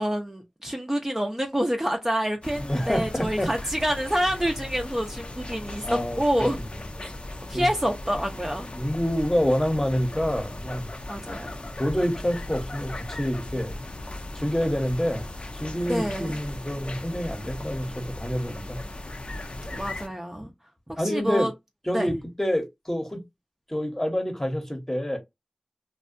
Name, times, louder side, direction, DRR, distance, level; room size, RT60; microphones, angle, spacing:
voice 1, 0.0-6.6 7.0-7.1 7.5-8.7 11.1-11.6 15.9-16.4 19.7-20.5 20.9-21.5 21.9-22.1, equal, 20° right, 0.5 m, -27 dB
sound 1, 2.4-20.1, left 1 dB, 60° left, 0.5 m, -37 dB
voice 2, 2.6-3.5 5.8-6.5 7.5-7.7 8.7-10.9 11.8-13.7 14.3-15.3 15.5-18.8 21.0-21.5 21.8-23.2 23.7-25.2, equal, 20° left, 0.9 m, -27 dB
2.6 x 2.2 x 2.5 m
wide cardioid pair, 45°, 2 cm